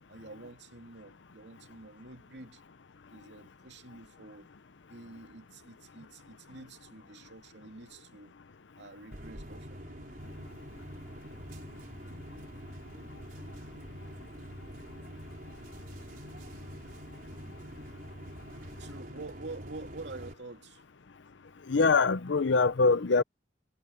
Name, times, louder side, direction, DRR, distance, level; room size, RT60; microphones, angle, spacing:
voice 1, 0.1-2.6 3.1-4.5 4.9-8.3 8.8-9.8 18.6-20.8, right 3 dB, 70° right, 2.7 m, -47 dB
sound 1, 9.1-20.3, equal, 50° right, 4.6 m, -45 dB
voice 2, 21.7-23.2, left 4 dB, 80° left, 0.7 m, -23 dB
head